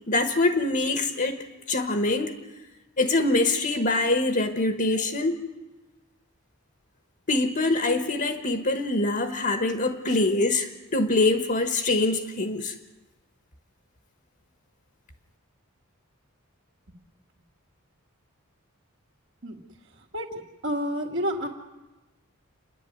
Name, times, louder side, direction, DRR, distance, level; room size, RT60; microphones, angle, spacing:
voice 1, 0.1-2.3 3.0-5.4 7.3-12.7, left 2 dB, 45° left, 7 dB, 1.4 m, -24 dB
voice 2, 20.0-21.5, equal, 60° right, 0 dB, 2.6 m, -31 dB
29.5 x 11.0 x 9.5 m, 1.1 s
head